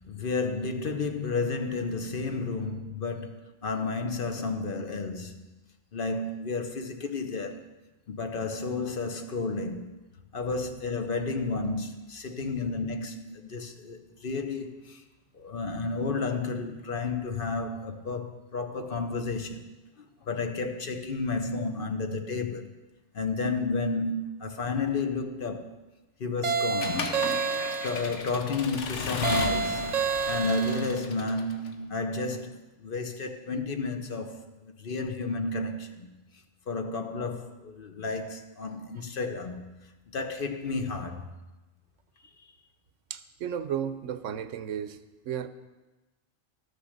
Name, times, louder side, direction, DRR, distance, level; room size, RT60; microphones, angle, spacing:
voice 1, 0.0-5.6 5.9-7.7 8.1-10.0 10.3-15.0 15.3-19.7 20.0-22.7 23.1-25.7 26.2-27.1 27.8-36.1 36.7-41.3, left 3 dB, 50° left, 0.9 m, -32 dB
sound 1, 26.4-28.2 29.2-31.0, right 5 dB, 65° right, 0.4 m, -29 dB
Accelerating revving vroom / Mechanisms, 26.8-31.7, left 5 dB, 80° left, 1.2 m, -35 dB
voice 2, 43.1-45.0 45.2-45.5, right 9 dB, 85° right, 1.0 m, -33 dB
13.0 x 6.7 x 6.4 m
omnidirectional pair, 1.2 m